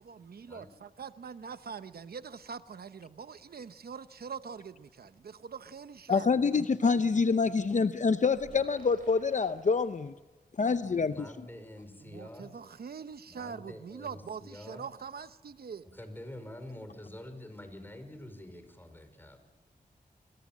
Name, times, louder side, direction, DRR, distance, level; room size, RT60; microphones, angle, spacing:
voice 1, 0.1-6.3 10.8-11.1 12.0-15.9, right 6 dB, 85° right, 12 dB, 0.8 m, -43 dB
voice 2, 6.1-10.1 10.6-11.3, left 5 dB, 50° left, 11 dB, 0.8 m, -26 dB
sound 1, 8.3-10.4, right 3 dB, 65° right, 7.8 m, -55 dB
voice 3, 10.9-12.5 13.3-14.9 15.9-19.4, left 1 dB, 15° left, 8 dB, 5.2 m, -47 dB
29.0 x 21.5 x 7.5 m, 1.2 s
wide cardioid pair, 75°, 16 cm